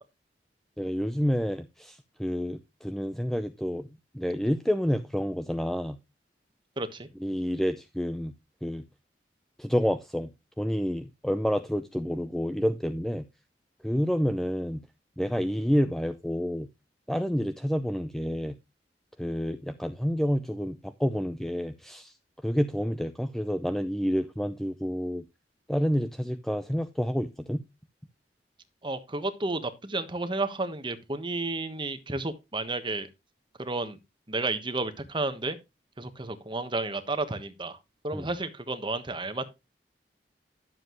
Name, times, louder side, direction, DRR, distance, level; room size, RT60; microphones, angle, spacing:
voice 1, 0.8-3.9 4.1-6.0 7.2-8.3 8.6-8.8 9.6-10.3 10.6-13.2 13.8-14.8 15.2-16.7 17.1-18.6 19.2-22.1 22.4-25.2 25.7-27.6 38.1-38.3, equal, ahead, 0.5 m, -29 dB
voice 2, 6.8-7.1 28.8-33.1 33.6-34.0 34.3-35.6 36.0-37.8 38.0-39.5, right 2 dB, 30° right, 1.2 m, -32 dB
11.5 x 7.6 x 3.1 m
head